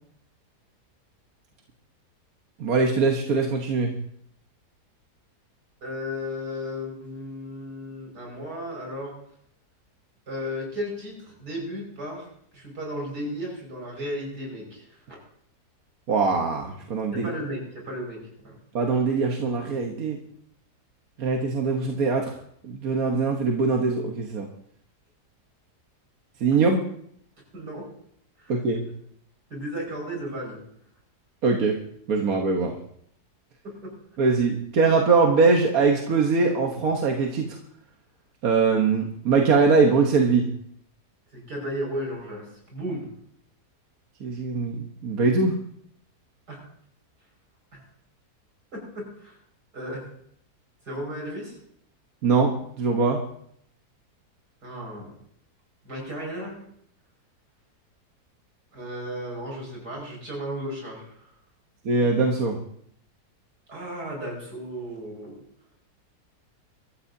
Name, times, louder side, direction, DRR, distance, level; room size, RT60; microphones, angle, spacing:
voice 1, 2.6-3.9 16.1-17.3 18.7-20.2 21.2-22.3 22.6-24.5 26.4-26.8 28.5-28.8 31.4-31.8 32.1-32.7 34.2-37.5 38.4-40.5 44.2-45.6 52.2-52.5 52.8-53.2 61.8-62.5, right 4 dB, 60° right, 1 dB, 1.6 m, -22 dB
voice 2, 5.8-9.1 10.3-12.3 12.5-15.2 17.1-18.6 27.5-27.9 28.4-28.5 29.5-30.6 33.6-33.9 41.3-43.1 46.5-46.6 47.7-47.8 48.7-49.3 49.7-50.0 50.9-51.6 54.6-55.2 55.8-56.5 58.7-61.1 63.7-65.4, equal, 75° right, -1 dB, 6.2 m, -34 dB
23.5 x 13.5 x 2.7 m, 0.67 s
omnidirectional pair, 1.7 m